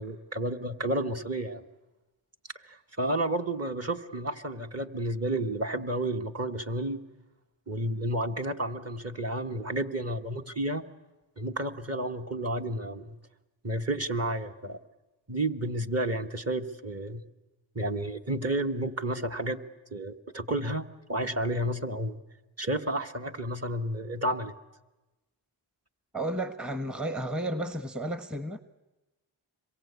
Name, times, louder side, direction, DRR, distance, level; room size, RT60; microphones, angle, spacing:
voice 1, 0.0-1.6 2.6-7.0 7.7-10.8 11.4-13.2 13.6-14.8 15.3-17.2 17.7-19.6 19.9-22.2 22.6-24.5, right 1 dB, 30° right, 5 dB, 1.6 m, -31 dB
voice 2, 26.1-28.6, right 1 dB, ahead, 11 dB, 1.1 m, -32 dB
26.0 x 23.0 x 8.4 m, 1.1 s
cardioid pair, 45°, 49 cm